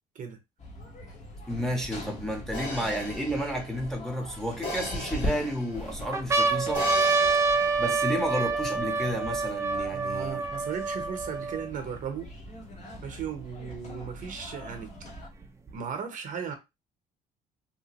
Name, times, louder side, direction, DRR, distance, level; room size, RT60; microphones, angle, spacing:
sound 1, 0.6-15.3, equal, 40° left, 1.3 m, -41 dB
voice 1, 1.5-6.9 7.8-10.5, equal, ahead, 0.8 m, -31 dB
sound 2, 1.8-1.9 2.6-3.8 4.5-5.3 5.8-5.9 6.1-11.8 12.5-12.6 12.7-13.7 14.7-15.7, right 4 dB, 15° right, 0.5 m, -27 dB
sound 3, 2.5-6.0 6.7-8.0, left 1 dB, 85° left, 2.0 m, -38 dB
voice 2, 9.9-12.3 13.0-14.9 15.7-16.5, right 7 dB, 50° right, 0.8 m, -36 dB
2.8 x 2.4 x 2.9 m
cardioid pair, 110°, 17 cm